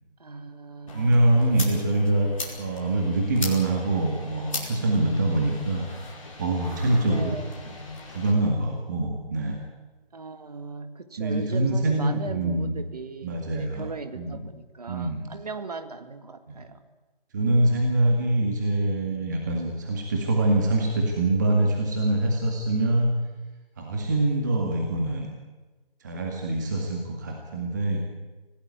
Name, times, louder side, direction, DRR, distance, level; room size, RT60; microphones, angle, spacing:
voice 1, 0.2-1.8 7.1-7.6 10.1-16.8 18.4-18.7, right 3 dB, 40° right, 9 dB, 2.0 m, -39 dB
sound 1, 0.9-8.3, left 3 dB, 35° left, 5.2 m, -39 dB
voice 2, 0.9-6.1 6.4-7.3 8.1-9.6 11.2-12.7 13.2-13.9 14.1-14.4 14.9-15.2 17.3-23.1 23.8-25.3 26.0-28.0, right 2 dB, 20° right, 1 dB, 2.0 m, -24 dB
25.5 x 17.5 x 9.6 m, 1.2 s
figure-of-eight pair, 165°, 30 cm